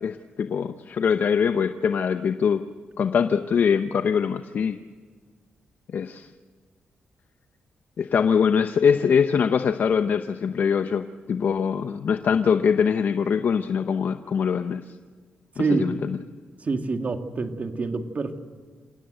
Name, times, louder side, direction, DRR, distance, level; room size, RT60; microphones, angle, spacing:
voice 1, 0.0-2.6 3.0-4.8 5.9-6.3 8.0-14.8 15.6-16.2, left 6 dB, 65° left, 9 dB, 0.8 m, -23 dB
voice 2, 15.6-15.9 16.6-18.4, right 3 dB, 45° right, 6 dB, 2.1 m, -26 dB
27.5 x 17.0 x 8.0 m, 1.5 s
cardioid pair, 70°, 3 cm